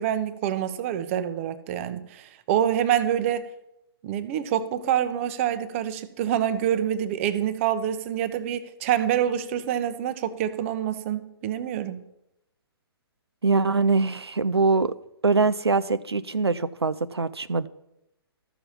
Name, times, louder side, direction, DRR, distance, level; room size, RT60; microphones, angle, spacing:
voice 1, 0.0-3.4 4.0-12.0, right 10 dB, 30° right, 0.8 m, -26 dB
voice 2, 13.4-14.9 15.2-17.7, right 3 dB, 80° right, 0.5 m, -23 dB
13.5 x 7.0 x 5.6 m
figure-of-eight pair, 125°, 13 cm